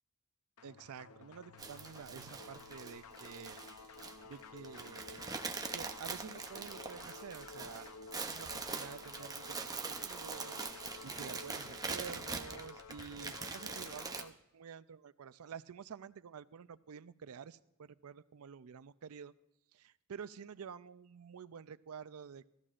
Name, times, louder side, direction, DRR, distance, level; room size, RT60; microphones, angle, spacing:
sound 1, 0.6-14.3, left 4 dB, 80° left, 0.6 m, -53 dB
voice 1, 0.6-3.6 4.2-5.5 5.7-7.9 8.2-19.3 19.7-22.5, right 7 dB, 75° right, 15 dB, 0.4 m, -50 dB
sound 2, 1.6-14.2, right 4 dB, 15° right, 0.6 m, -43 dB
16.5 x 14.0 x 2.5 m, 0.86 s
head